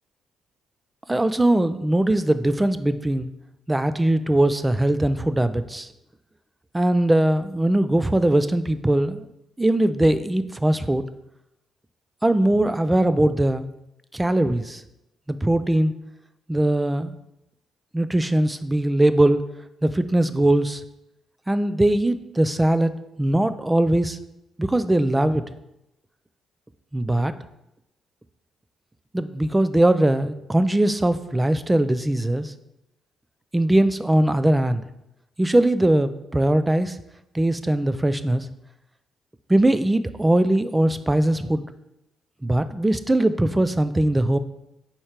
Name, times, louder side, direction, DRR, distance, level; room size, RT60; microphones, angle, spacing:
voice 1, 1.1-3.3 3.7-5.9 6.7-9.3 9.6-11.0 12.2-13.7 14.1-14.8 15.3-15.9 16.5-17.2 17.9-19.4 19.8-20.8 21.5-22.9 23.2-24.2 24.6-25.4 26.9-27.3 29.1-32.5 33.5-34.8 35.4-37.0 37.3-38.5 39.5-41.6 42.4-44.4, right 1 dB, 10° right, 12 dB, 0.4 m, -20 dB
4.4 x 4.3 x 5.0 m, 0.88 s
cardioid pair, 90°, 0 cm